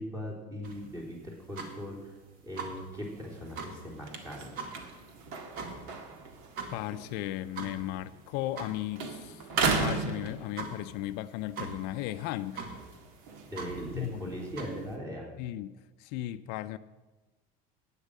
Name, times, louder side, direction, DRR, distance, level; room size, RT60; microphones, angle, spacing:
voice 1, 0.0-2.2 2.4-4.5 13.5-15.3, equal, 20° right, -2 dB, 3.5 m, -39 dB
sound 1, 0.6-15.0, right 4 dB, 55° right, 2.0 m, -44 dB
sound 2, 3.0-8.7 8.9-11.0 11.4-14.5, right 4 dB, 75° right, 1.7 m, -36 dB
voice 2, 6.7-9.5 9.8-12.6 13.9-14.4 15.4-16.8, left 14 dB, 65° left, 11 dB, 0.5 m, -36 dB
12.0 x 9.1 x 6.4 m, 1.2 s
cardioid pair, 150°, 18 cm